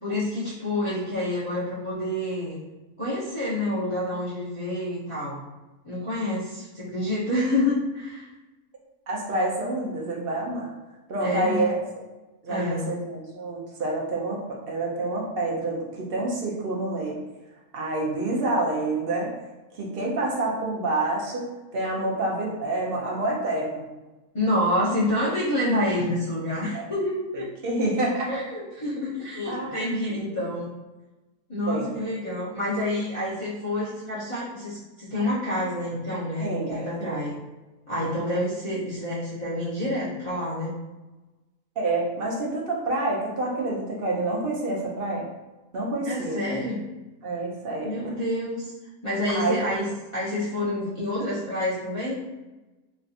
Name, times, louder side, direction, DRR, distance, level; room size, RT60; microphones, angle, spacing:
voice 1, 0.0-2.6 3.0-5.4 5.8-8.3 11.2-11.7 12.5-13.0 24.3-27.5 28.3-30.7 31.5-37.4 37.9-40.7 46.0-46.8 47.8-48.7 49.0-52.1, left 1 dB, 25° left, -12 dB, 0.8 m, -28 dB
voice 2, 9.1-10.7 11.1-12.0 12.4-17.2 17.7-19.3 19.7-23.9 26.7-26.9 27.3-28.3 29.5-30.4 31.7-31.9 36.4-36.7 37.0-37.3 38.0-38.2 41.8-45.3 45.7-46.4 47.2-48.0 49.3-49.6, right 2 dB, 55° right, -3 dB, 0.7 m, -28 dB
3.3 x 2.7 x 2.4 m, 1.1 s
omnidirectional pair, 1.5 m